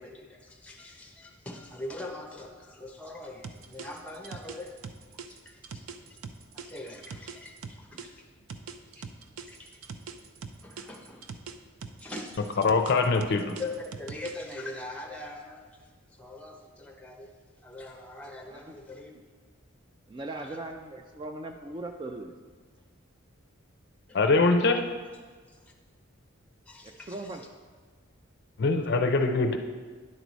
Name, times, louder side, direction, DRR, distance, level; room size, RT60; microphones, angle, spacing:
voice 1, 0.0-4.7 5.3-5.9 6.5-8.2 9.0-9.1 9.5-9.8 10.6-11.2 12.0-12.6 13.6-15.6 16.2-17.3 17.6-19.1 20.4-20.6 24.1-24.2 25.5-25.6 26.7-27.4, left 2 dB, 5° left, 1 dB, 0.8 m, -42 dB
sound 1, 3.4-8.1 8.5-11.5 11.8-14.5, right 6 dB, 80° right, 0.5 m, -42 dB
voice 2, 12.6-13.4 24.1-24.8 28.6-29.6, left 3 dB, 50° left, 6 dB, 0.5 m, -23 dB
voice 3, 20.1-22.3 26.8-27.4, right 2 dB, 20° right, 4 dB, 0.3 m, -39 dB
10.0 x 4.6 x 4.0 m, 1.5 s
head